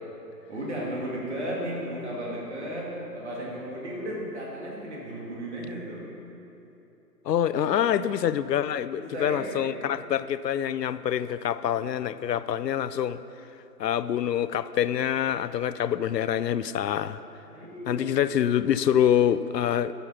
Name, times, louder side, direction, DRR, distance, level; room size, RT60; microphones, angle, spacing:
voice 1, 0.5-6.0 7.6-7.8 8.9-9.8 17.5-18.3, equal, 45° right, -4 dB, 2.7 m, -35 dB
voice 2, 7.3-13.2 13.8-17.2 17.9-19.9, left 10 dB, 80° left, 14 dB, 0.6 m, -26 dB
12.5 x 7.1 x 5.9 m, 2.9 s
hypercardioid pair, 175°, 49 cm